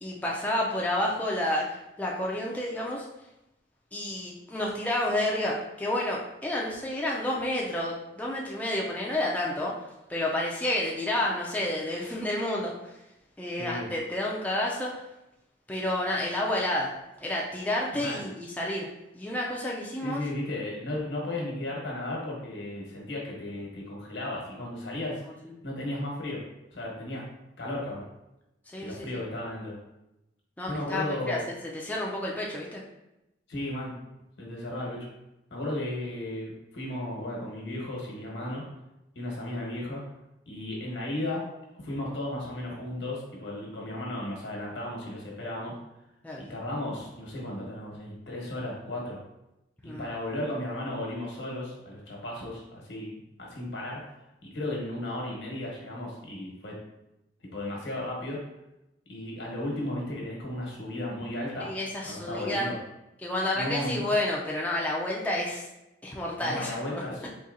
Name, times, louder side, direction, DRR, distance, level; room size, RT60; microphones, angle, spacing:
voice 1, 0.0-3.1 3.9-9.7 10.1-13.0 13.4-14.9 15.7-16.9 17.2-18.9 19.1-20.2 25.4-25.6 28.7-29.2 30.6-32.8 46.2-46.5 49.8-50.0 61.6-62.7 63.2-65.7 66.0-67.3, left 1 dB, 10° left, -3 dB, 0.4 m, -30 dB
voice 2, 13.6-13.9 17.9-18.2 20.0-25.2 25.6-26.4 26.7-27.2 27.6-28.1 28.8-29.8 30.6-31.4 33.5-33.9 34.4-35.1 35.5-38.6 39.1-40.0 40.4-41.4 41.7-45.7 46.4-49.2 49.8-54.0 54.4-56.8 57.5-58.4 59.1-61.7 62.0-62.8 63.5-64.0 66.4-67.3, left 1 dB, 80° left, -2 dB, 1.1 m, -35 dB
4.1 x 2.7 x 2.5 m, 0.92 s
head